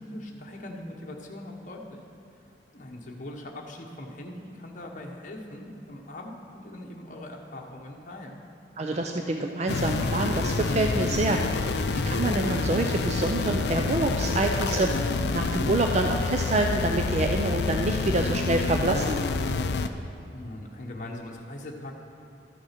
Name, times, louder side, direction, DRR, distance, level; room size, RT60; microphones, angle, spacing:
voice 1, 0.0-2.0 2.7-8.4 20.3-21.9, left 1 dB, 45° left, 0 dB, 1.1 m, -41 dB
voice 2, 8.8-19.2, right 2 dB, 40° right, 3 dB, 0.4 m, -27 dB
sound 1, 9.7-19.9, left 3 dB, 65° left, 0.5 m, -27 dB
13.0 x 6.3 x 5.8 m, 2.7 s
head